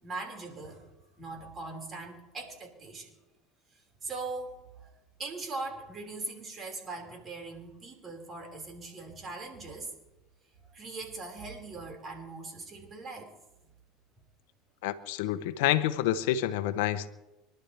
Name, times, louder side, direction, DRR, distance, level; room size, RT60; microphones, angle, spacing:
voice 1, 0.0-0.9 1.2-3.1 3.7-4.9 5.2-9.9 10.7-13.3, right 3 dB, 35° right, 1 dB, 5.2 m, -40 dB
voice 2, 14.8-17.1, left 12 dB, 75° left, 13 dB, 0.9 m, -28 dB
26.5 x 12.0 x 3.4 m, 1.0 s
hypercardioid pair, 90°, 0 cm